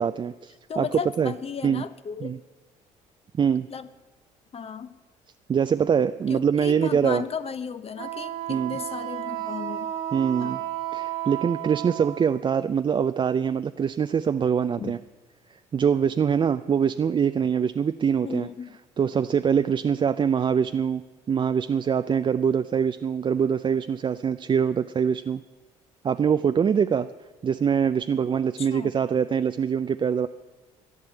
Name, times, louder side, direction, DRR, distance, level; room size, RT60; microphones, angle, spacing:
voice 1, 0.0-0.8 1.2-1.3 1.6-1.8 2.2-2.4 3.4-3.7 5.5-7.2 8.5-8.8 10.1-10.6 10.9-15.0 15.7-18.5 19.0-25.4 26.0-27.1 27.4-30.3, right 7 dB, 35° right, 10 dB, 0.4 m, -24 dB
voice 2, 0.7-2.3 3.7-3.9 4.5-5.0 6.3-9.9 10.4-10.7 14.8-14.9 18.2-18.8 28.6-28.9, left 7 dB, 45° left, 12 dB, 0.9 m, -35 dB
Wind instrument woodwind instrument, 8.0-12.4, right 13 dB, 80° right, 1.3 m, -33 dB
11.5 x 11.0 x 8.0 m, 1.2 s
supercardioid pair, 70°, 15 cm